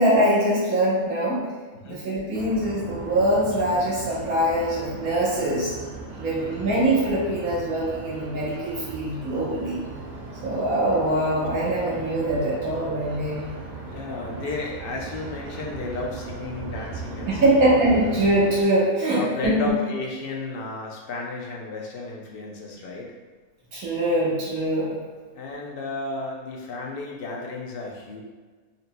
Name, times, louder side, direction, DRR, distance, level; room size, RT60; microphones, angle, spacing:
voice 1, 0.0-1.4 1.8-5.7 6.1-9.8 10.4-13.5 17.3-19.5 23.7-24.9, right 1 dB, 90° right, -7 dB, 1.7 m, -23 dB
sound 1, 2.3-18.6, right 3 dB, 50° right, 0.5 m, -38 dB
voice 2, 6.3-6.7 10.6-10.7 13.9-18.0 19.1-23.1 25.3-28.2, left 3 dB, 55° left, -1 dB, 0.6 m, -33 dB
4.1 x 4.0 x 2.2 m, 1.4 s
omnidirectional pair, 1.5 m